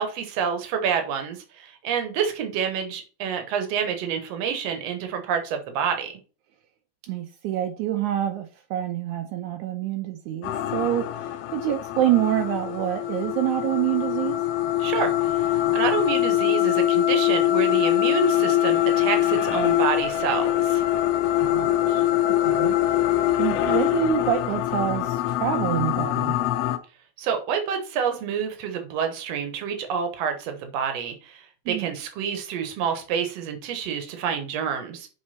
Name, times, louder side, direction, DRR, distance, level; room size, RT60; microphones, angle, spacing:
voice 1, 0.0-6.1 14.8-20.9 27.2-35.1, right 7 dB, 65° right, 2.0 m, -28 dB
voice 2, 7.0-14.4 21.4-22.1 22.4-22.8 23.4-26.3 31.7-31.9, right 11 dB, 80° right, 2.0 m, -27 dB
sound 1, 10.4-26.8, left 13 dB, 80° left, 1.5 m, -23 dB
6.6 x 4.5 x 4.2 m
omnidirectional pair, 3.5 m